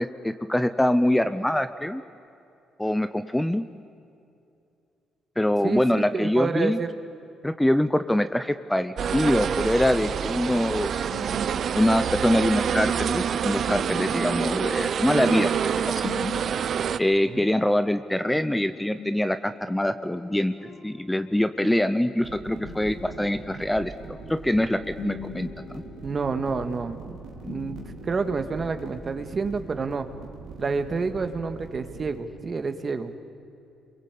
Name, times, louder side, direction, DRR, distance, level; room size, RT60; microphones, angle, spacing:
voice 1, 0.0-2.0 2.8-3.6 5.4-6.8 7.4-11.0 11.7-15.5 15.8-16.3 17.0-20.5 20.8-25.8, left 1 dB, 5° left, 11 dB, 0.8 m, -24 dB
voice 2, 6.1-6.9 17.3-17.5 26.0-27.1 27.4-30.1 30.6-33.2, right 4 dB, 40° right, 8 dB, 1.9 m, -29 dB
sound 1, 9.0-17.0, right 8 dB, 60° right, 0.6 m, -26 dB
sound 2, 10.6-29.4, left 7 dB, 65° left, 2.0 m, -44 dB
sound 3, 22.2-32.2, right 4 dB, 85° right, 3.3 m, -42 dB
29.0 x 23.0 x 8.5 m, 2.6 s
cardioid pair, 90°, 0 cm